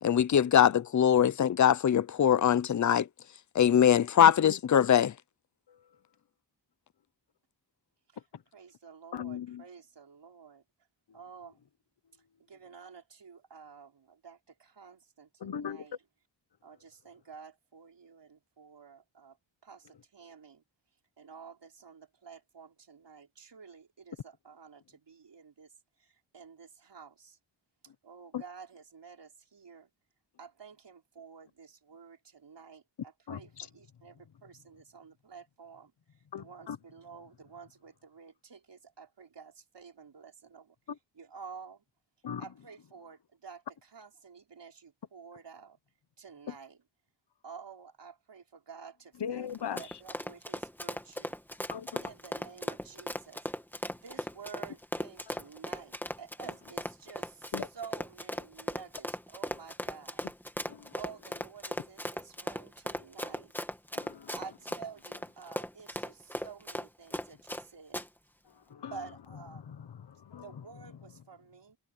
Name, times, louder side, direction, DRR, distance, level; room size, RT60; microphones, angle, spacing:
voice 1, 0.0-3.1 3.5-5.1, left 9 dB, 40° left, 0.6 m, -22 dB
voice 2, 4.2-4.6 5.7-5.9 8.3-8.4 9.1-9.6 11.1-11.2 15.4-15.8 28.3-28.4 33.3-33.7 36.3-36.8 40.9-41.0 42.2-42.5 46.5-46.6 49.2-50.0 51.7-52.1 55.3-55.4 57.5-57.7 60.7-61.0 63.9-64.4 68.4-69.0 69.5-70.6, left 8 dB, 60° left, 1.2 m, -40 dB
voice 3, 8.5-10.6 11.1-11.6 12.4-16.0 16.6-19.4 19.6-20.6 21.2-25.7 26.0-27.4 28.0-29.9 30.4-32.8 33.3-35.9 36.4-40.7 41.2-41.8 42.4-45.8 46.2-46.8 47.4-51.3 52.0-53.5 53.9-60.2 60.9-63.5 64.3-68.0 68.8-69.7 70.4-71.8, right 6 dB, 65° right, 4.6 m, -50 dB
Run, 49.5-67.6 67.9-68.1, equal, 5° left, 2.3 m, -37 dB
wide cardioid pair, 100°, 46 cm